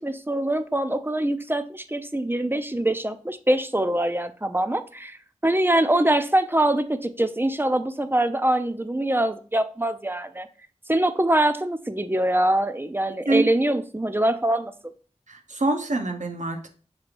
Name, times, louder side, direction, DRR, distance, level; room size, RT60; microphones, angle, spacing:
voice 1, 0.0-10.5 10.9-14.7, right 1 dB, 15° right, 10 dB, 0.4 m, -24 dB
voice 2, 15.3-16.7, right 2 dB, 70° right, 4 dB, 0.6 m, -25 dB
6.2 x 3.0 x 2.5 m, 0.39 s
wide cardioid pair, 40°, 13 cm